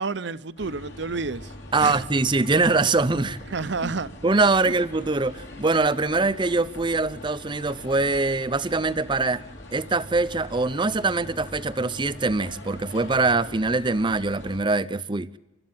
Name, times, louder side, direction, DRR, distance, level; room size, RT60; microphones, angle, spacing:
voice 1, 0.0-2.0 3.5-4.1 4.6-4.7, right 4 dB, 60° right, 0.7 m, -30 dB
sound 1, 0.6-14.6, left 1 dB, 60° left, 3.4 m, -42 dB
voice 2, 1.7-3.4 3.8-3.9 4.2-9.4 9.7-15.4, right 3 dB, 25° right, 0.6 m, -23 dB
28.0 x 13.0 x 7.2 m
head